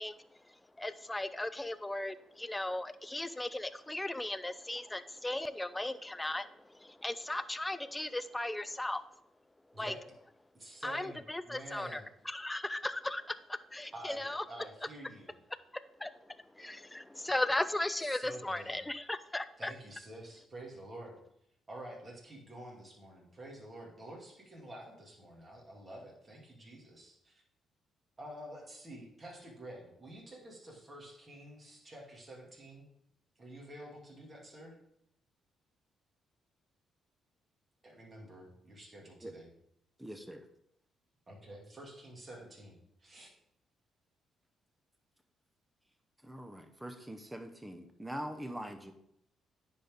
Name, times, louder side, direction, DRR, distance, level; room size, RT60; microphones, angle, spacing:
voice 1, 0.0-9.0 9.7-9.9 10.8-14.5 16.0-19.7, left 1 dB, 10° left, 13 dB, 0.3 m, -37 dB
voice 2, 10.5-12.0 13.9-15.3 18.0-18.8 19.6-21.2 21.7-27.4 28.2-32.9 33.4-34.8 37.8-39.5 41.3-43.3, right 1 dB, 30° right, -2 dB, 2.3 m, -49 dB
voice 3, 40.0-40.5 46.2-48.9, equal, 10° right, 7 dB, 0.8 m, -43 dB
9.8 x 4.1 x 3.6 m, 0.75 s
cardioid pair, 90°, 0 cm